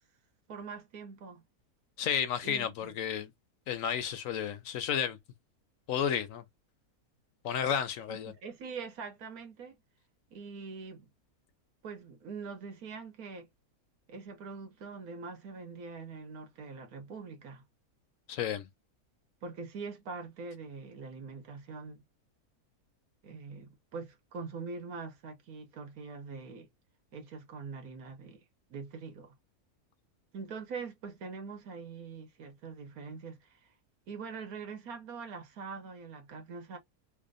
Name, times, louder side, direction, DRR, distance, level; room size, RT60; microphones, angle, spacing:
voice 1, 0.5-1.4 2.4-2.9 8.1-9.8 10.3-11.1 11.8-13.5 14.1-17.6 19.4-22.0 23.2-26.7 27.1-28.4 28.7-29.3 30.3-33.6 34.1-36.8, right 5 dB, 75° right, 1.4 m, -43 dB
voice 2, 2.0-3.3 3.7-5.2 5.9-6.4 7.4-8.3 18.3-18.7, left 8 dB, 70° left, 0.9 m, -32 dB
3.5 x 2.1 x 3.7 m
omnidirectional pair, 1.6 m